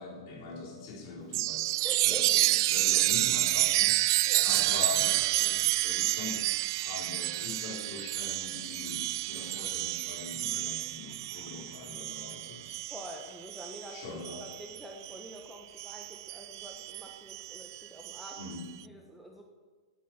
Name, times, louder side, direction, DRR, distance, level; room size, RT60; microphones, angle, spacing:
voice 1, 0.0-4.0 4.4-6.5 6.7-12.8 13.9-14.5 18.4-18.9, left 3 dB, 45° left, -1 dB, 4.3 m, -42 dB
Chime, 1.3-15.3 15.8-18.6, right 17 dB, 50° right, 0.3 m, -30 dB
voice 2, 1.8-2.4 4.3-4.4 12.9-18.4 18.8-19.4, equal, ahead, 1 dB, 1.5 m, -46 dB
9.6 x 9.3 x 9.6 m, 1.5 s
figure-of-eight pair, 105°, 3 cm